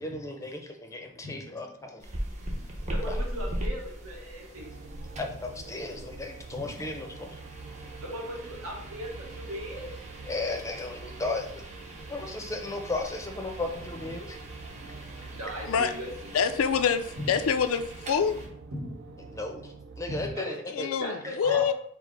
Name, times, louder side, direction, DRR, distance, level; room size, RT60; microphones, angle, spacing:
voice 1, 0.0-2.1 3.1-3.2 5.2-7.4 10.3-11.6 12.1-14.4 19.3-20.9, left 2 dB, 15° left, 3 dB, 0.5 m, -35 dB
voice 2, 0.9-1.9 2.5-4.7 5.1-5.2 6.5-6.8 7.7-9.9 11.9-12.2 13.9-16.4 17.2-17.4 18.3-18.4 18.7-19.7 20.1-20.6 21.0-21.7, equal, 80° right, -2 dB, 1.2 m, -40 dB
sound 1, 2.0-18.5, equal, 35° right, 0.7 m, -40 dB
sound 2, 4.5-20.3, right 4 dB, 55° right, 0.4 m, -46 dB
voice 3, 16.3-18.3 20.7-21.7, left 7 dB, 70° left, 10 dB, 0.4 m, -26 dB
4.6 x 2.0 x 4.5 m, 0.64 s
head